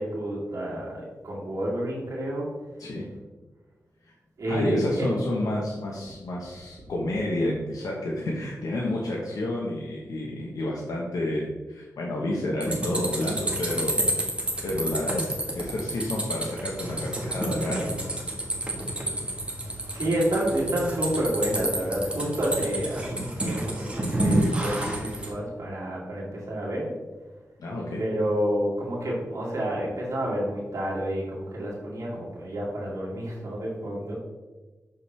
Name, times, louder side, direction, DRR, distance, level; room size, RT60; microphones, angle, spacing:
voice 1, 0.0-2.5 4.4-5.1 19.9-26.9 28.0-34.1, right 1 dB, 65° right, -5 dB, 2.1 m, -29 dB
voice 2, 4.5-13.9 14.6-18.2 27.6-28.0, left 1 dB, 80° left, -3 dB, 1.0 m, -30 dB
sound 1, 12.6-25.3, right 1 dB, 20° right, 1.3 m, -29 dB
6.4 x 5.8 x 3.2 m, 1.3 s
wide cardioid pair, 110°, 6 cm